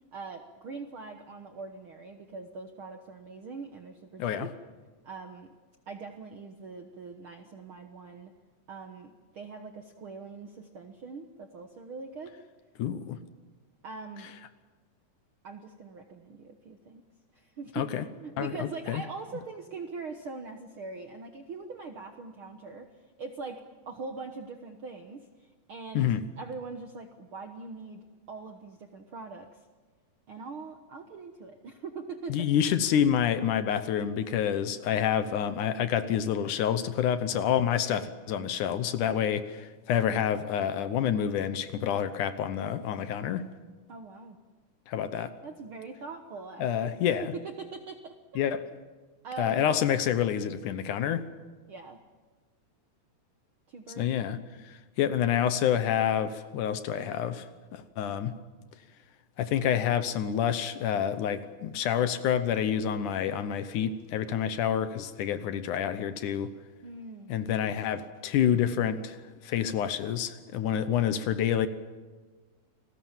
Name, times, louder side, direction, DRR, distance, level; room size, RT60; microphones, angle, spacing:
voice 1, 0.1-4.5 5.0-5.5 5.9-8.3 8.7-12.3 13.8-14.3 15.4-17.0 17.3-29.7 30.3-32.9 43.9-44.4 45.4-48.5 49.2-49.6 51.7-52.0 53.7-54.4 66.8-67.3, right 4 dB, 60° right, 6 dB, 1.4 m, -42 dB
voice 2, 12.8-13.2 17.8-18.0 18.4-19.0 25.9-26.2 32.3-43.5 44.9-45.4 46.6-47.3 48.4-48.7 49.4-51.3 54.0-54.4 55.0-57.5 57.7-58.3 59.4-66.5 67.3-69.2 69.4-71.7, left 9 dB, 70° left, 12 dB, 2.3 m, -28 dB
29.0 x 20.0 x 7.4 m, 1.4 s
omnidirectional pair, 4.1 m